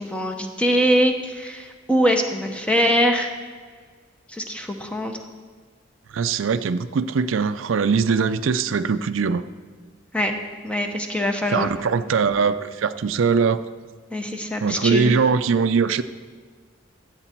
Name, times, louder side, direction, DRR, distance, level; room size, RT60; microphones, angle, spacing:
voice 1, 0.0-3.3 4.3-5.2 10.1-10.3 10.6-11.7 14.1-15.1, equal, 5° left, 4 dB, 0.9 m, -22 dB
voice 2, 6.1-9.5 11.5-13.6 14.6-16.0, right 5 dB, 90° right, 12 dB, 0.5 m, -21 dB
14.0 x 8.2 x 4.5 m, 1.5 s
head